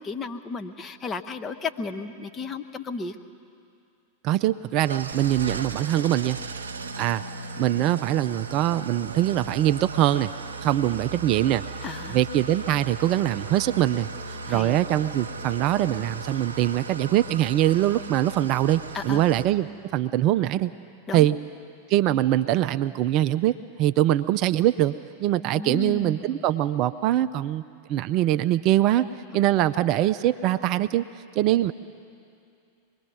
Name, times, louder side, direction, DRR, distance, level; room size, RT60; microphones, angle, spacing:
voice 1, 0.0-3.1 11.8-12.2 14.5-14.8 18.9-19.2 21.1-21.3 25.5-26.4, left 4 dB, 20° left, 7 dB, 0.9 m, -34 dB
voice 2, 4.2-6.4 7.0-7.2 7.6-10.3 10.6-11.6 12.1-20.7 21.1-21.4 21.9-24.9 25.2-27.6 27.9-29.1 29.3-31.0 31.4-31.7, right 13 dB, 40° right, 12 dB, 0.4 m, -23 dB
Engine starting / Idling, 4.8-19.4, right 3 dB, 70° right, 1.0 m, -37 dB
24.5 x 21.0 x 5.4 m, 2.4 s
figure-of-eight pair, 90°, 0 cm